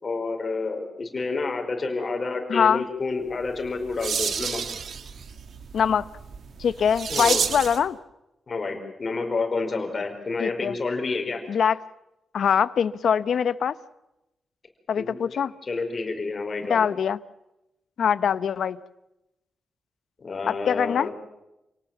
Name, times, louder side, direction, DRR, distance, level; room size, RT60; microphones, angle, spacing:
voice 1, 0.0-4.6 7.1-7.5 8.5-11.4 15.0-15.4 15.7-16.9 20.2-21.1, left 3 dB, 35° left, 4.8 m, -29 dB
voice 2, 2.5-2.8 5.7-6.0 6.6-8.0 10.4-10.7 11.5-11.8 12.3-13.8 14.9-15.5 16.7-17.2 18.0-18.8 20.5-21.1, left 7 dB, 65° left, 0.9 m, -23 dB
sound 1, 3.4-7.9, right 6 dB, 60° right, 1.6 m, -30 dB
28.0 x 18.5 x 7.3 m
wide cardioid pair, 135°, 0 cm